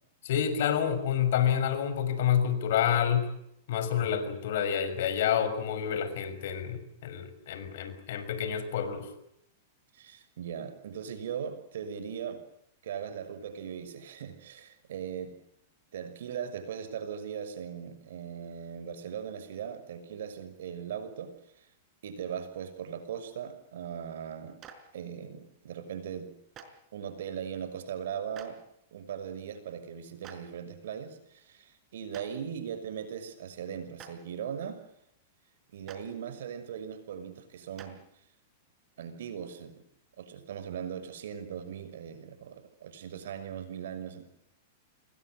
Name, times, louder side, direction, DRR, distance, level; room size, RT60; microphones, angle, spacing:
voice 1, 0.2-3.3 3.7-9.1, left 9 dB, 65° left, 11 dB, 6.1 m, -28 dB
voice 2, 9.9-12.4 12.8-15.4 15.9-21.7 22.0-24.6 24.9-26.3 26.9-28.6 28.9-34.8 35.7-38.0 39.0-39.8 40.2-44.3, right 8 dB, 75° right, 12 dB, 6.1 m, -39 dB
Clapping, 24.6-24.7 26.5-26.6 28.3-28.5 30.2-30.3 32.1-32.2 33.9-34.1 35.8-36.0 37.8-37.9, right 9 dB, 30° right, 5.1 m, -46 dB
28.5 x 22.0 x 7.9 m, 0.76 s
hypercardioid pair, 135°, 0 cm